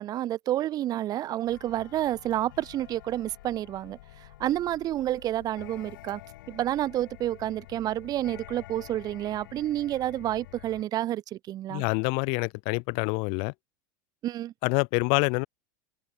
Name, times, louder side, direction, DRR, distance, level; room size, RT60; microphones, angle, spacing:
voice 1, 0.0-6.2 6.5-11.8 14.2-14.5, right 13 dB, 35° right, 1.8 m, -29 dB
sound 1, 1.5-10.8, left 16 dB, 85° left, 5.1 m, -49 dB
voice 2, 11.7-13.5 14.6-15.5, left 35 dB, 55° left, 0.4 m, -26 dB
supercardioid pair, 140°, 11 cm